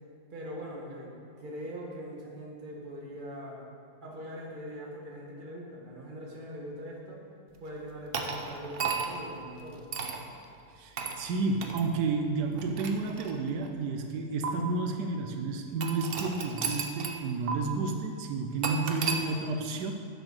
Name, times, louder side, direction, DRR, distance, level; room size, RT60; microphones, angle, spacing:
voice 1, 0.3-3.6 4.0-7.2 7.6-9.9, equal, 30° right, -2 dB, 1.5 m, -42 dB
sound 1, 8.1-9.3 9.9-10.2 11.0-11.2 11.6-11.8 12.5-13.7 14.4-14.5 15.8-17.2 17.5-17.6 18.6-19.2, right 5 dB, 50° right, 0.7 m, -33 dB
voice 2, 10.8-19.9, right 3 dB, 85° right, 5 dB, 1.2 m, -31 dB
7.8 x 7.2 x 6.4 m, 2.5 s
omnidirectional pair, 1.7 m